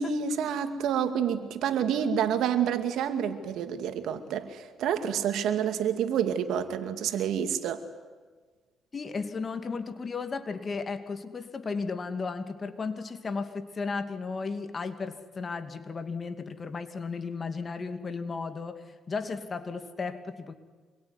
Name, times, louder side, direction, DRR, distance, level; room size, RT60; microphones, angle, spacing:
voice 1, 0.0-7.8, right 8 dB, 80° right, 9 dB, 2.4 m, -28 dB
voice 2, 8.9-20.5, left 4 dB, 35° left, 9 dB, 2.5 m, -34 dB
26.5 x 23.0 x 9.8 m, 1.4 s
cardioid pair, 90°, 0 cm